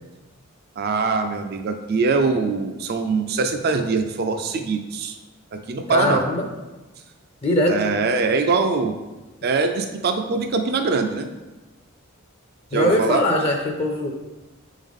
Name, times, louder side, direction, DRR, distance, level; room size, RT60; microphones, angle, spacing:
voice 1, 0.8-5.2 5.5-6.2 7.7-8.9 9.4-11.3 12.7-13.2, right 4 dB, 50° right, 6 dB, 0.4 m, -23 dB
voice 2, 5.9-6.5 7.4-7.8 12.7-14.1, left 1 dB, 30° left, 2 dB, 0.5 m, -21 dB
7.6 x 3.7 x 3.6 m, 1.1 s
head